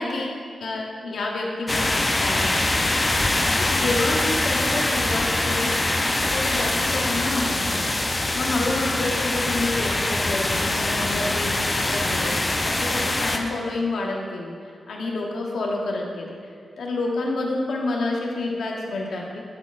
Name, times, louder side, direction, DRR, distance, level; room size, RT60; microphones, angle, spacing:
voice 1, 0.0-2.8 3.6-5.9 6.2-14.5 14.9-16.3 16.8-19.4, left 2 dB, 80° left, -1 dB, 0.9 m, -29 dB
sound 1, 1.7-13.4, left 2 dB, 30° left, 0.6 m, -23 dB
11.5 x 4.2 x 2.5 m, 2.2 s
cardioid pair, 50°, 0 cm